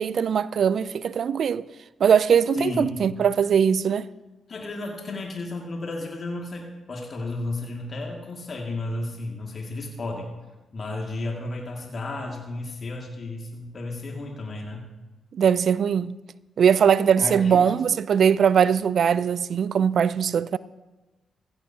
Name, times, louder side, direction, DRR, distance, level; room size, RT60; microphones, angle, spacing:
voice 1, 0.0-1.7 2.0-4.1 15.3-16.2 16.6-20.6, right 7 dB, 65° right, 0.4 m, -21 dB
voice 2, 2.5-3.1 4.5-10.3 10.7-14.9 17.2-17.8, left 2 dB, 50° left, 2.2 m, -33 dB
15.5 x 15.5 x 2.9 m
hypercardioid pair, 45°, 0 cm